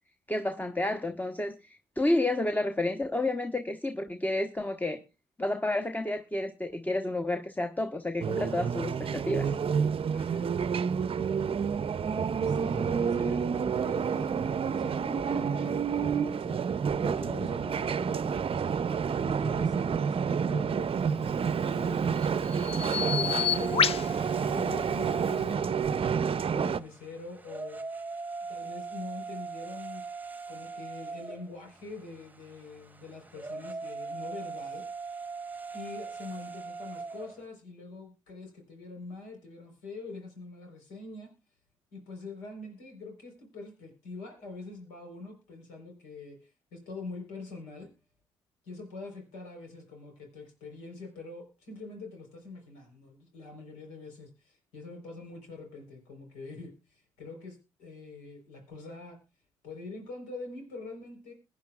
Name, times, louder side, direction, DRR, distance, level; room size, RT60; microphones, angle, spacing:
voice 1, 0.3-5.0 5.4-9.5, left 2 dB, 10° left, 1.1 m, -30 dB
sound 1, 8.2-26.8, right 6 dB, 40° right, 0.6 m, -29 dB
voice 2, 10.1-10.7 12.4-22.5 22.9-23.9 24.5-27.8 28.5-30.0 30.5-34.8 35.7-41.3 41.9-47.9 48.6-59.2 59.6-61.3, left 3 dB, 80° left, 4.2 m, -44 dB
Bird vocalization bird call bird song, 21.3-25.5, left 8 dB, 45° left, 0.7 m, -32 dB
sound 2, 23.0-37.5, right 4 dB, 10° right, 1.2 m, -41 dB
22.0 x 9.5 x 2.4 m
hypercardioid pair, 45°, 14 cm